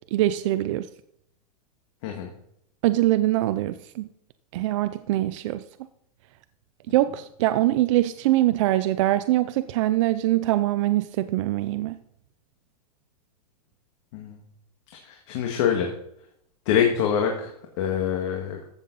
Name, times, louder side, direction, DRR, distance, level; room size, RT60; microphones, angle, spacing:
voice 1, 0.1-0.9 2.8-4.1 4.5-5.6 6.9-12.0, right 15 dB, 50° right, 12 dB, 0.5 m, -23 dB
voice 2, 15.0-15.9 16.7-18.6, left 8 dB, 50° left, 2 dB, 1.9 m, -25 dB
14.0 x 7.3 x 4.1 m, 0.76 s
supercardioid pair, 150°, 19 cm